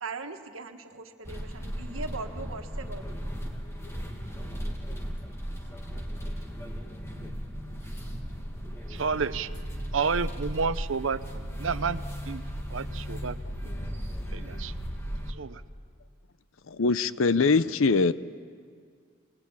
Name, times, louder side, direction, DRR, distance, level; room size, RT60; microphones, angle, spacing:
voice 1, 0.0-3.3, right 3 dB, 90° right, 6 dB, 1.5 m, -40 dB
sound 1, 1.2-15.3, equal, 15° left, 2.1 m, -36 dB
voice 2, 8.9-9.5 9.9-12.4 12.7-13.4 14.3-14.7 15.3-15.6, right 5 dB, 70° right, 14 dB, 0.7 m, -30 dB
voice 3, 16.8-18.1, left 4 dB, 80° left, 15 dB, 0.7 m, -22 dB
24.0 x 20.0 x 8.7 m, 2.1 s
head